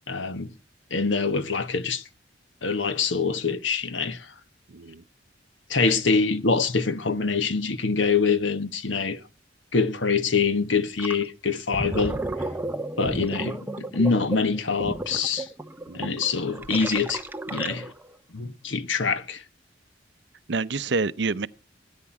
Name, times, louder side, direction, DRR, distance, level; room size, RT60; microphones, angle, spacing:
voice 1, 0.1-0.5 0.9-2.0 2.6-4.3 5.7-9.2 9.7-12.2 13.0-15.5 15.9-17.2 17.5-17.9 18.3-19.4, left 4 dB, 85° left, 1.3 m, -25 dB
voice 2, 4.7-5.0 15.9-16.2 20.5-21.5, right 4 dB, 65° right, 0.7 m, -28 dB
Gurgling, 11.0-11.2 11.6-18.1, right 2 dB, 10° right, 0.6 m, -33 dB
17.5 x 9.6 x 6.0 m
head